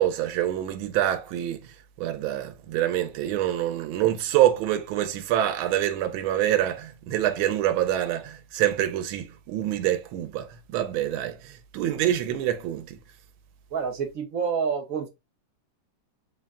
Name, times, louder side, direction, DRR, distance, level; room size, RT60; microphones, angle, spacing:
voice 1, 0.0-1.7 2.0-13.0, right 12 dB, 90° right, 1.5 m, -26 dB
voice 2, 13.7-15.1, right 6 dB, 65° right, 0.9 m, -28 dB
4.4 x 2.1 x 3.5 m
omnidirectional pair, 2.2 m